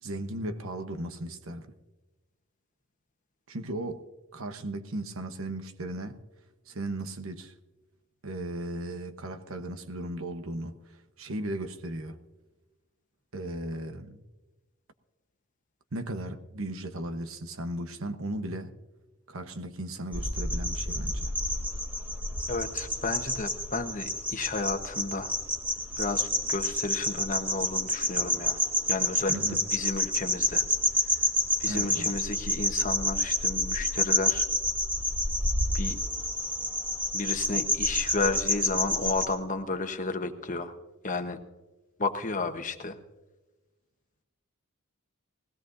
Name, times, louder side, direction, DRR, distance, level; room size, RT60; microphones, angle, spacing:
voice 1, 0.0-1.7 3.5-4.1 4.3-6.2 6.7-7.5 8.2-10.8 11.2-12.2 13.3-14.2 15.9-18.7 19.3-21.3 29.3-29.7 31.7-32.2, right 1 dB, 65° right, 1.0 m, -36 dB
sound 1, 20.1-39.3, left 1 dB, 5° right, 1.5 m, -29 dB
voice 2, 22.5-25.3 26.0-28.6 28.9-29.4 29.7-30.6 31.1-31.2 31.6-34.4 35.7-36.0 37.1-40.7 41.0-41.4 42.0-43.0, left 3 dB, 35° left, 1.0 m, -32 dB
21.0 x 17.0 x 2.6 m
head